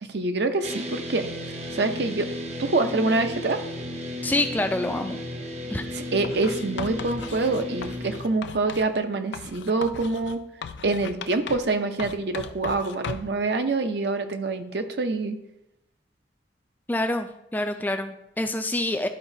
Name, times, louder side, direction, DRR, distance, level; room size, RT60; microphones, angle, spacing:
voice 1, 0.0-1.3 1.7-2.3 2.6-3.6 5.9-10.4 10.8-15.4, right 3 dB, 70° right, 7 dB, 0.7 m, -26 dB
sound 1, 0.6-8.2, left 1 dB, 35° right, 0.8 m, -34 dB
voice 2, 4.2-5.2 5.7-5.9 16.9-19.1, left 1 dB, 10° left, 7 dB, 0.3 m, -27 dB
Writing, 6.2-8.9 9.3-11.7 12.0-13.4, left 6 dB, 80° left, 0.4 m, -38 dB
11.5 x 4.8 x 2.7 m, 0.83 s
head